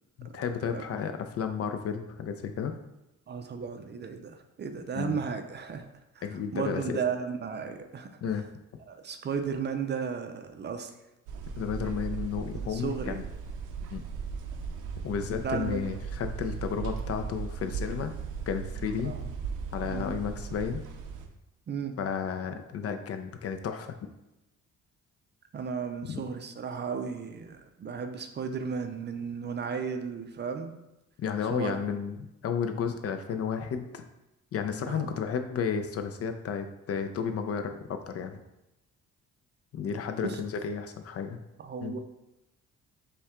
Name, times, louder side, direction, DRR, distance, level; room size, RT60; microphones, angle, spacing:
voice 1, 0.2-2.7 4.9-5.2 6.2-7.0 8.2-8.5 11.6-13.2 13.9-14.0 15.0-18.1 18.5-19.1 19.7-20.8 22.0-24.0 26.0-26.2 31.2-34.0 34.5-38.4 39.7-41.4 41.8-41.9, left 7 dB, 50° left, 7 dB, 0.5 m, -32 dB
voice 2, 3.3-5.9 6.2-8.1 8.9-10.9 12.5-13.2 15.4-15.8 19.0-19.3 19.8-20.1 21.7-21.9 25.5-30.8 31.5-31.8 34.9-35.2 40.2-40.4 41.6-42.0, right 6 dB, 35° right, 7 dB, 0.4 m, -34 dB
sound 1, 11.3-21.3, right 6 dB, 90° right, 0.6 m, -37 dB
5.4 x 2.2 x 3.6 m, 0.94 s
cardioid pair, 90°, 30 cm